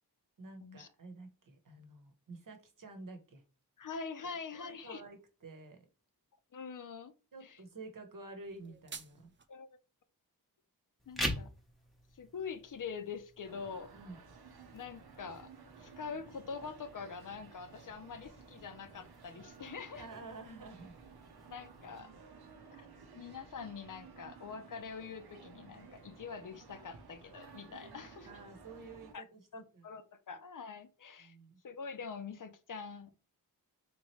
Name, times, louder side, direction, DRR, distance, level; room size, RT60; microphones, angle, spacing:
voice 1, 0.4-3.4 4.5-5.8 7.3-9.3 13.9-14.2 20.0-21.0 28.3-29.9 31.2-31.6, right 3 dB, 60° right, 1.0 m, -50 dB
voice 2, 3.8-5.0 6.5-7.1 7.4-7.6 9.5-9.7 11.1-11.5 12.1-13.9 14.7-15.5 15.8-20.1 21.5-22.1 22.7-22.9 23.1-28.3 29.1-29.2 29.5-31.4 31.6-33.1, left 5 dB, 55° left, 0.6 m, -44 dB
sound 1, 8.4-9.5, right 5 dB, 30° right, 0.4 m, -49 dB
sound 2, 11.0-22.0, equal, ahead, 0.8 m, -46 dB
sound 3, 13.4-29.1, right 5 dB, 85° right, 0.8 m, -55 dB
3.6 x 2.9 x 3.1 m
wide cardioid pair, 75°, 37 cm